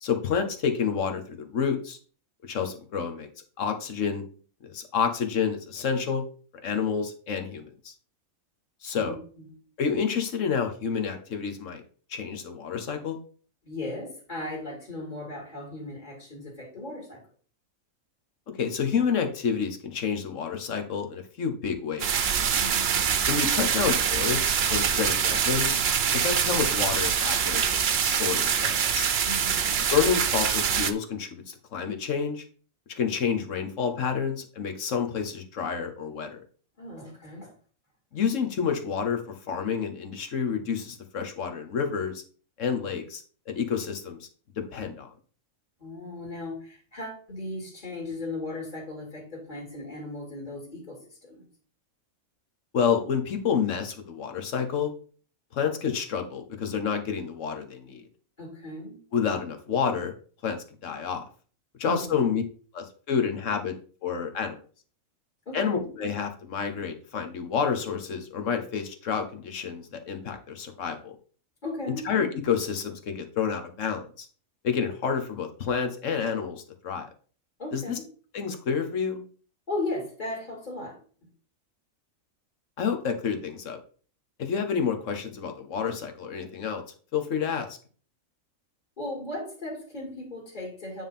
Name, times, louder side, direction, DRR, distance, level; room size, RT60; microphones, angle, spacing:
voice 1, 0.0-2.0 2.4-3.3 3.6-4.2 4.6-6.2 6.6-7.9 8.8-9.2 9.8-11.8 12.1-13.2 18.6-22.3 23.3-25.8 26.1-29.1 29.9-32.4 32.9-36.4 38.1-39.2 39.5-42.2 42.6-44.3 44.7-45.1 52.7-54.9 55.5-58.0 59.1-60.1 60.4-61.2 61.8-62.4 62.7-63.7 64.0-64.6 65.5-71.1 72.0-74.3 74.6-77.1 77.7-78.0 78.3-79.2 82.8-83.8 84.4-86.8 87.1-87.8, left 6 dB, 65° left, 6 dB, 1.5 m, -29 dB
voice 2, 8.9-9.6 13.6-17.2 22.6-23.0 29.2-29.8 36.8-37.5 45.8-51.4 58.4-59.0 61.8-62.3 65.5-65.9 71.6-72.1 77.6-78.0 79.7-81.0 89.0-91.0, left 2 dB, 35° left, -1 dB, 2.5 m, -37 dB
sound 1, 22.0-30.9, right 7 dB, 55° right, 0.9 m, -25 dB
9.4 x 3.8 x 5.5 m, 0.42 s
omnidirectional pair, 1.4 m